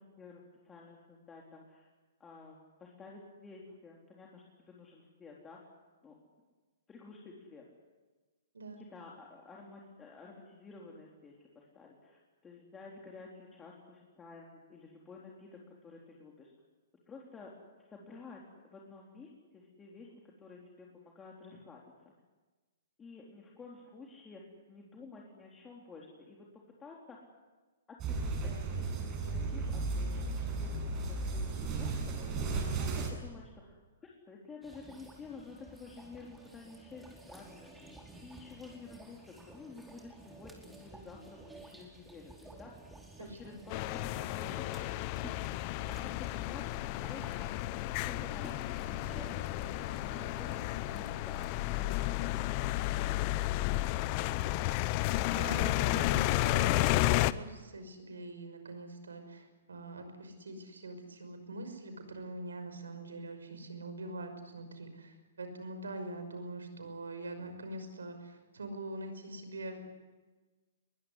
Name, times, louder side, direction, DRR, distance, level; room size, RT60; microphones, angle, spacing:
voice 1, 0.0-1.9 2.2-5.6 6.0-6.1 6.9-7.6 8.8-15.5 15.8-16.5 17.1-17.5 17.9-21.8 23.0-24.4 24.7-26.4 26.8-27.2 28.1-42.8 43.2-45.4 46.0-46.1 46.5-46.6 46.9-47.5 48.0-53.8, left 4 dB, 15° left, -2 dB, 3.9 m, -52 dB
sound 1, 28.0-33.1, right 3 dB, 30° right, 7.6 m, -34 dB
sound 2, 34.6-54.4, right 2 dB, 5° right, 4.7 m, -53 dB
voice 2, 43.2-43.6 55.3-69.8, right 2 dB, 75° right, 8 dB, 5.7 m, -44 dB
sound 3, 43.7-57.3, left 17 dB, 40° left, 0.8 m, -32 dB
22.5 x 21.0 x 9.9 m, 1.3 s
figure-of-eight pair, 115°, 0 cm